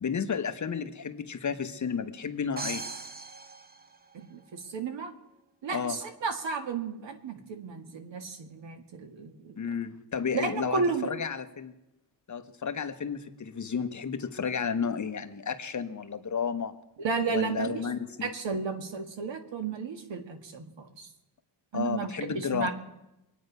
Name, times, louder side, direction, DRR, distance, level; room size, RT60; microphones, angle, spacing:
voice 1, 0.0-2.8 5.7-6.0 9.6-11.7 12.3-16.7 17.3-18.3 21.7-22.7, left 6 dB, 40° left, 8 dB, 1.0 m, -32 dB
sound 1, 2.6-4.5, right 3 dB, 20° right, 0.6 m, -39 dB
voice 2, 4.1-5.1 5.6-9.6 10.3-11.1 17.0-17.9 18.2-21.1 21.7-22.7, right 5 dB, 70° right, 6 dB, 1.8 m, -33 dB
24.0 x 9.3 x 5.4 m, 0.91 s
wide cardioid pair, 145°, 46 cm